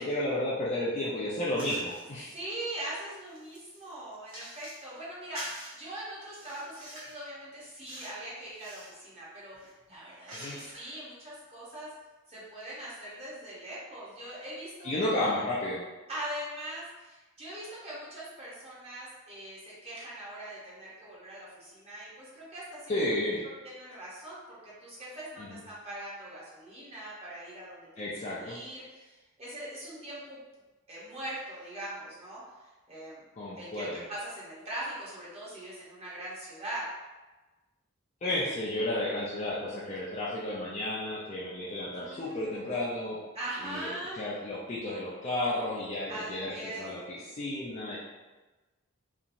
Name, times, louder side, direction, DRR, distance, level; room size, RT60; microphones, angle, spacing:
voice 1, 0.0-2.3 10.3-10.6 14.8-15.8 22.9-23.4 25.4-25.6 28.0-28.6 33.4-33.9 38.2-43.2 43.6-43.9 44.2-48.0, left 1 dB, 30° left, -7 dB, 0.4 m, -32 dB
sound 1, 1.6-2.1 2.6-4.9 5.3-5.8 6.3-7.2 7.9-8.2 8.5-9.0 9.5-11.0, equal, 65° right, 1.1 m, -45 dB
voice 2, 2.2-11.9 12.3-15.3 16.1-23.0 23.6-30.4 30.9-32.4 32.9-33.2 33.6-36.8 41.6-42.6 43.3-44.2 46.1-46.9, right 1 dB, 30° right, -7 dB, 0.9 m, -41 dB
2.9 x 2.5 x 2.5 m, 1.2 s
head